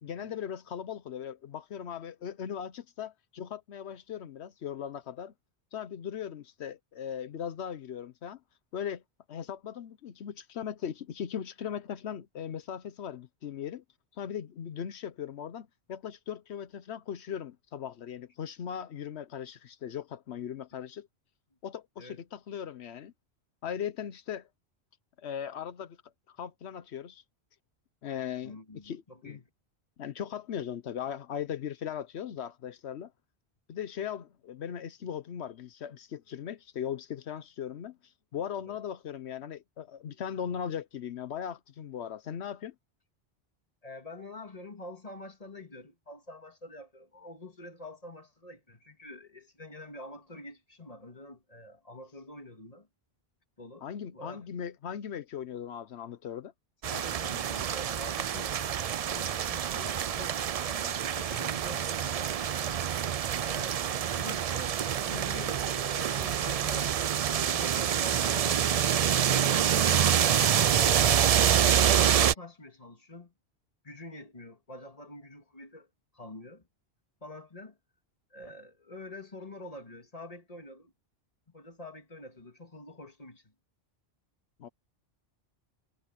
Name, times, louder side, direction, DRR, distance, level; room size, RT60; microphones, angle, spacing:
voice 1, 0.0-5.3 5.7-8.4 8.7-9.0 9.3-13.8 14.1-21.1 21.6-23.1 23.6-24.5 25.2-26.0 26.3-27.2 28.0-28.6 28.8-29.4 30.0-33.1 33.7-42.7 53.8-56.5 84.6-84.7, left 8 dB, 85° left, 1.1 m, -38 dB
voice 2, 28.4-29.5 38.7-38.8 43.8-52.9 53.6-54.4 56.9-58.6 58.9-62.7 63.4-66.9 67.5-71.4 71.8-73.3 73.8-75.9 76.1-76.6 77.2-77.8 78.3-80.9 81.5-83.5, left 2 dB, 35° left, 2.4 m, -46 dB
sound 1, 56.8-72.3, right 9 dB, 55° right, 0.4 m, -27 dB
omnidirectional pair, 1.1 m